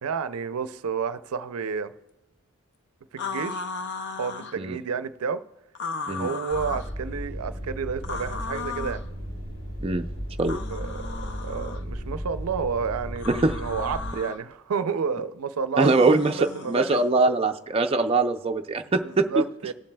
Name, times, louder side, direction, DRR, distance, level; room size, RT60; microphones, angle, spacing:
voice 1, 0.0-1.9 3.1-3.7 4.2-5.4 6.1-9.0 10.7-16.9 19.0-19.7, right 6 dB, 90° right, 0.5 m, -30 dB
sound 1, 3.2-4.6 5.7-6.9 8.0-9.0 10.4-11.8 13.2-14.4 15.8-17.1, left 4 dB, 55° left, 0.5 m, -36 dB
sound 2, 6.5-14.2, equal, 75° left, 2.8 m, -35 dB
voice 2, 15.8-19.3, right 3 dB, 25° right, 0.4 m, -22 dB
18.5 x 7.4 x 2.2 m
head